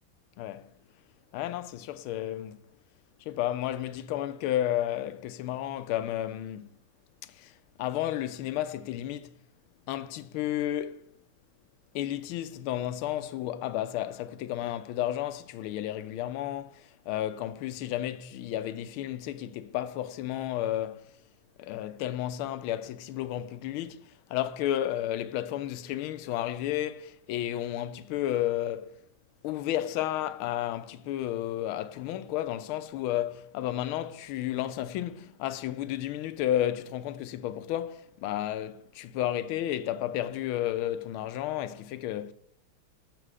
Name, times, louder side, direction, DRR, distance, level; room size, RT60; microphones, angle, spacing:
voice 1, 0.4-0.7 1.3-2.6 3.3-6.7 7.2-9.3 9.9-11.0 11.9-21.1 21.6-29.0 29.4-42.3, left 12 dB, 80° left, 1.4 m, -32 dB
7.8 x 6.6 x 4.8 m
omnidirectional pair, 2.4 m